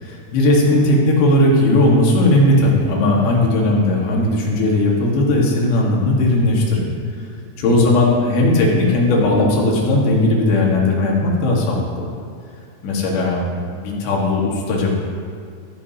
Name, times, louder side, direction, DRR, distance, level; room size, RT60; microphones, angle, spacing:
voice 1, 0.0-6.9 7.6-12.1 12.8-13.5 13.8-15.0, left 1 dB, 80° left, -2 dB, 4.0 m, -17 dB
14.5 x 13.5 x 2.9 m, 2.2 s
omnidirectional pair, 4.9 m